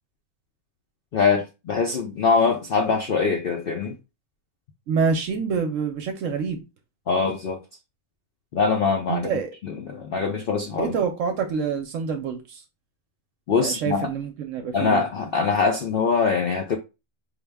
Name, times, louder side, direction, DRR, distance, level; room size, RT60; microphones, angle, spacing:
voice 1, 1.1-3.9 7.1-7.6 8.5-9.3 9.6-10.9 13.5-14.1 14.7-16.8, left 5 dB, 65° left, 0.5 m, -23 dB
voice 2, 4.9-6.6 9.1-9.5 10.8-12.6 13.6-15.0, right 6 dB, 70° right, 0.9 m, -26 dB
4.9 x 2.1 x 3.4 m
omnidirectional pair, 1.5 m